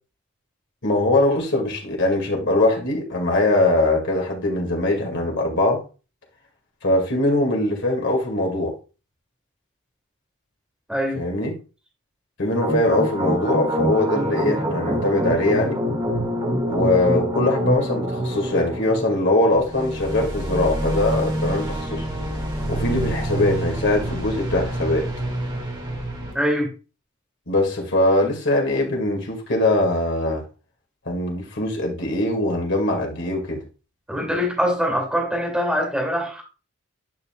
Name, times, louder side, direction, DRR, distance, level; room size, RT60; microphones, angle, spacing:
voice 1, 0.8-5.8 6.8-8.7 11.2-11.5 12.4-15.8 16.7-22.1 22.7-25.1 27.5-30.4 31.1-33.6, left 2 dB, 60° left, 1 dB, 2.0 m, -21 dB
voice 2, 10.9-11.2 26.3-26.7 34.1-36.4, equal, 5° right, -1 dB, 2.6 m, -23 dB
sound 1, 12.6-26.3, right 1 dB, 20° right, 2.0 m, -26 dB
10.5 x 5.5 x 2.4 m, 0.33 s
head